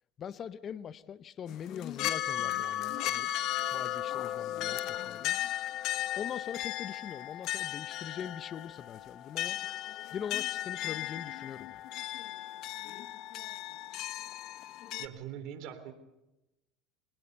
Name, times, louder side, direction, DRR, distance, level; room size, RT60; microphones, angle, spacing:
voice 1, 0.2-3.3 3.7-5.4 6.2-9.6 10.1-11.8, left 8 dB, 40° left, 16 dB, 0.8 m, -42 dB
sound 1, 1.5-15.1, left 13 dB, 60° left, 1.3 m, -36 dB
voice 2, 15.0-15.9, right 9 dB, 60° right, 9 dB, 3.6 m, -42 dB
24.0 x 20.0 x 6.9 m, 0.96 s
supercardioid pair, 105°, 0 cm